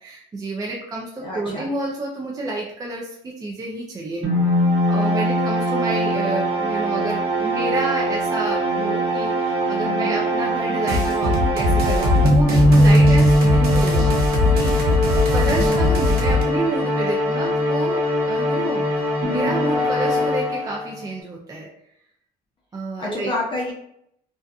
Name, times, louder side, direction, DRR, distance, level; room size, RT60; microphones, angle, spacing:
voice 1, 0.0-4.2 4.5-18.0 18.3-21.7 22.7-23.3, right 2 dB, 20° right, -2 dB, 0.4 m, -29 dB
voice 2, 1.2-1.7 9.8-10.2 12.7-13.0 15.4-15.8 23.0-23.7, left 2 dB, 30° left, -3 dB, 0.6 m, -29 dB
sound 1, 4.2-21.0, equal, 40° right, 1.2 m, -21 dB
sound 2, 10.9-16.4, left 2 dB, 65° right, 0.7 m, -21 dB
2.5 x 2.3 x 2.3 m, 0.72 s
cardioid pair, 110°, 17 cm